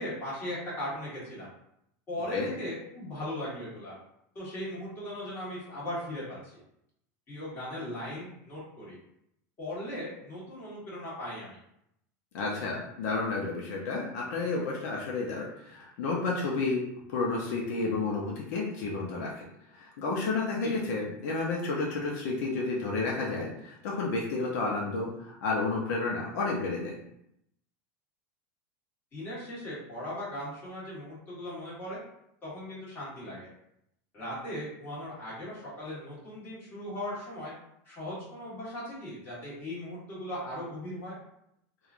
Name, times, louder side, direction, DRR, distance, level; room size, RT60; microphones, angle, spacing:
voice 1, 0.0-1.5 2.1-3.9 4.3-6.6 7.3-9.0 9.6-11.6 20.6-20.8 29.1-32.0 32.4-33.5 34.1-37.5 37.8-41.2, left 1 dB, 25° left, -8 dB, 1.4 m, -38 dB
voice 2, 12.3-16.8 17.1-19.5 19.7-27.0, left 3 dB, 70° left, -2 dB, 0.6 m, -31 dB
3.0 x 2.3 x 2.4 m, 0.77 s
supercardioid pair, 150°, 9 cm